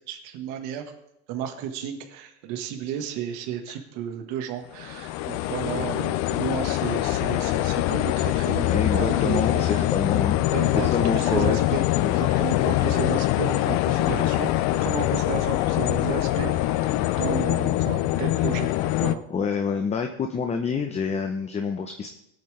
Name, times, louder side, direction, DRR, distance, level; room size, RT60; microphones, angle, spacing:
voice 1, 0.1-0.8 1.3-9.8 10.5-16.5 16.8-18.7 19.0-19.2, right 9 dB, 60° right, 5 dB, 1.6 m, -33 dB
sound 1, 4.7-19.1, left 15 dB, 50° left, 0.6 m, -24 dB
voice 2, 8.6-10.4 10.8-11.6 12.0-12.1 19.3-22.1, left 6 dB, 20° left, 5 dB, 0.8 m, -27 dB
19.0 x 8.8 x 3.3 m, 0.81 s
supercardioid pair, 130°, 35 cm